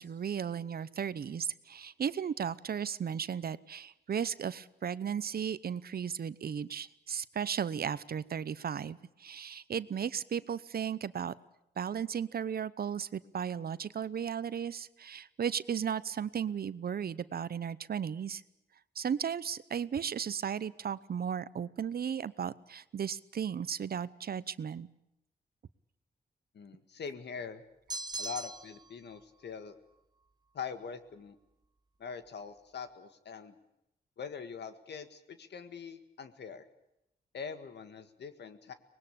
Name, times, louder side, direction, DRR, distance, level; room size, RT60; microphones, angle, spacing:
voice 1, 0.0-11.3 11.8-18.4 19.0-24.9, right 8 dB, 60° right, 17 dB, 0.8 m, -35 dB
voice 2, 26.5-27.6 28.2-29.8 30.5-31.4 32.0-33.6 34.2-36.7 37.3-38.7, left 6 dB, 75° left, 10 dB, 1.9 m, -43 dB
sound 1, 27.9-28.9, right 2 dB, 25° right, 1.0 m, -39 dB
24.5 x 20.0 x 8.6 m, 0.85 s
cardioid pair, 90°, 18 cm